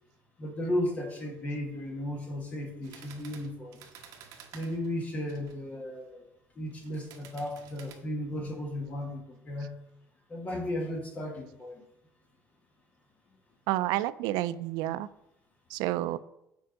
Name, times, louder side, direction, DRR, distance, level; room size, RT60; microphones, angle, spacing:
voice 1, 0.4-3.8 4.5-6.2 6.6-9.8 10.3-11.8, left 1 dB, 20° left, 3 dB, 1.2 m, -35 dB
sound 1, 2.8-5.6 6.7-7.9, right 7 dB, 55° right, 1.1 m, -51 dB
voice 2, 13.7-15.1 15.7-16.2, right 15 dB, 85° right, 16 dB, 0.3 m, -30 dB
6.9 x 4.5 x 5.1 m, 0.85 s
cardioid pair, 180°, 7 cm